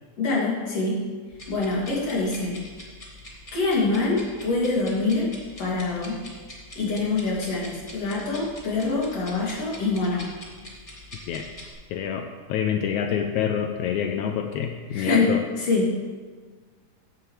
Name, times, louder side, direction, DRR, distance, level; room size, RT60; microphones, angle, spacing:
voice 1, 0.2-1.0 1.5-2.6 3.5-5.3 5.6-6.2 6.8-10.3 14.9-15.9, left 3 dB, 50° left, -5 dB, 3.6 m, -25 dB
sound 1, 1.3-11.7, left 1 dB, 15° left, 1.1 m, -44 dB
voice 2, 11.9-15.4, left 8 dB, 80° left, 5 dB, 1.9 m, -27 dB
15.0 x 9.4 x 3.3 m, 1.5 s
omnidirectional pair, 3.6 m